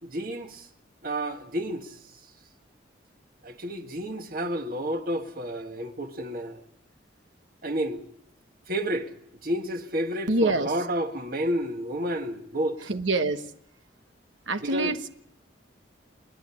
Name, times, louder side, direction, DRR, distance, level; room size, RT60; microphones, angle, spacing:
voice 1, 0.0-0.7 1.0-2.0 3.4-6.6 7.6-8.0 8.7-9.1 9.4-12.9 14.7-14.9, right 1 dB, 45° right, 1.6 m, -30 dB
voice 2, 10.3-10.7 12.9-13.5 14.5-15.1, right 2 dB, 80° right, 1.1 m, -25 dB
29.0 x 10.5 x 9.8 m
head